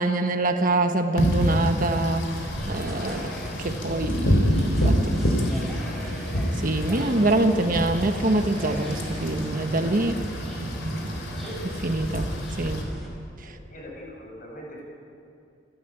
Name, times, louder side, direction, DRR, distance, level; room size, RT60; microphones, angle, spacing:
voice 1, 0.0-3.3 3.6-5.4 6.0-6.1 6.6-10.2 10.8-11.0 11.6-12.3 12.6-12.8 13.4-13.5, right 2 dB, 45° right, 6 dB, 1.2 m, -25 dB
Wind / Rain, 1.2-12.8, equal, 75° left, 3.7 m, -27 dB
sound 1, 2.3-13.1, equal, ahead, 5.0 m, -38 dB
voice 2, 5.0-5.4 10.4-10.9 13.4-14.8, equal, 45° left, -2 dB, 7.5 m, -44 dB
sound 2, 8.1-10.9, right 1 dB, 25° right, 6.1 m, -46 dB
29.0 x 12.5 x 9.1 m, 2.5 s
head